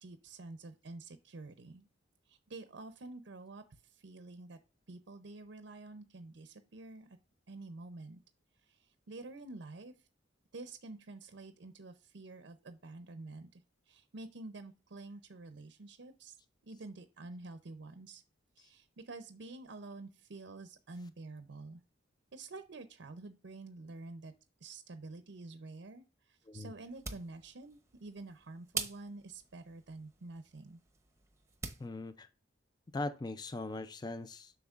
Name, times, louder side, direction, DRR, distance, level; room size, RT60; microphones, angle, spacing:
voice 1, 0.0-1.9 2.3-4.6 4.9-7.2 7.5-8.2 8.6-10.1 10.5-16.4 16.6-18.2 18.6-21.8 22.3-24.3 24.6-30.8, right 2 dB, 65° right, 0.6 m, -49 dB
sound 1, 26.8-31.9, right 4 dB, 15° right, 0.8 m, -45 dB
voice 2, 31.8-32.3 32.9-34.5, left 2 dB, 20° left, 0.3 m, -40 dB
8.0 x 5.9 x 2.4 m
head